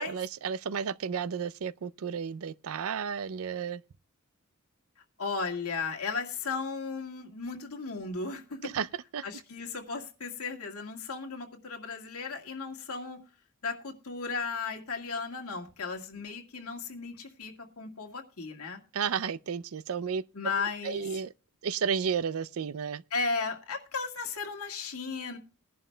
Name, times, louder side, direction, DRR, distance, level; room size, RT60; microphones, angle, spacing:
voice 1, 0.0-3.8 8.6-8.9 9.1-9.2 18.9-20.2 20.8-21.3 21.6-23.0, right 6 dB, 70° right, 0.5 m, -32 dB
voice 2, 5.2-8.7 9.2-13.2 13.6-18.8 20.3-21.1 23.1-25.4, left 4 dB, 80° left, 1.9 m, -35 dB
21.0 x 11.0 x 2.2 m
head